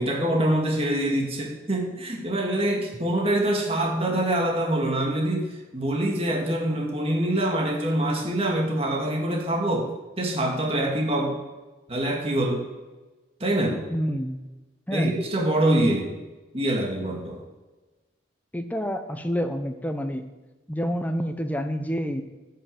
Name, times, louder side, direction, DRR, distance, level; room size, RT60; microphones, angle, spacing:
voice 1, 0.0-9.9 10.2-11.4 11.9-12.6 13.4-13.8 14.9-16.1 16.5-17.4, right 1 dB, 30° right, 0 dB, 2.1 m, -25 dB
voice 2, 13.9-14.4 14.9-15.2 18.5-20.3 20.7-22.2, equal, 10° left, 7 dB, 0.8 m, -28 dB
10.5 x 6.7 x 7.7 m, 1.2 s
head